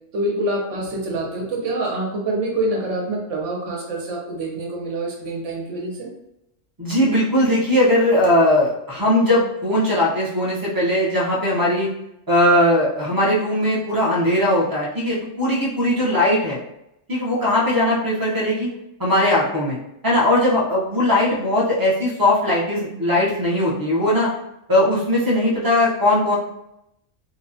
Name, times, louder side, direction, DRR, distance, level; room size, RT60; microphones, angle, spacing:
voice 1, 0.1-6.1, right 2 dB, 70° right, 0 dB, 1.0 m, -26 dB
voice 2, 6.8-11.9 12.3-16.6 17.1-18.7 19.0-19.8 20.0-24.3 24.7-26.4, left 1 dB, 25° right, -6 dB, 0.5 m, -19 dB
2.7 x 2.2 x 2.6 m, 0.82 s
omnidirectional pair, 1.3 m